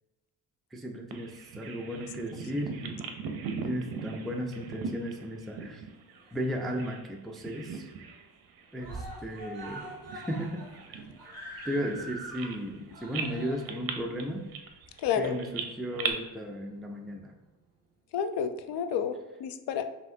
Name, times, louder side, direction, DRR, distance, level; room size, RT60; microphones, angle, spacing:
voice 1, 0.7-3.2 3.6-5.8 6.3-7.9 8.7-9.8 10.1-10.6 10.9-11.0 11.6-14.4 15.2-17.3, equal, ahead, 2 dB, 0.3 m, -35 dB
Bird vocalization bird call bird song, 1.1-7.1 7.3-8.3 8.6-8.8 9.4-12.8 13.1-16.1, right 5 dB, 60° right, 0.6 m, -39 dB
Screaming, 5.9-6.8 7.2-7.3 7.6-7.7 8.0-8.5 8.8-15.6 16.4-16.5, right 1 dB, 40° right, 1.2 m, -45 dB
voice 2, 15.0-15.4 18.1-19.8, left 7 dB, 80° left, 9 dB, 0.5 m, -30 dB
5.5 x 2.6 x 2.6 m, 1.1 s
cardioid pair, 115°, 40 cm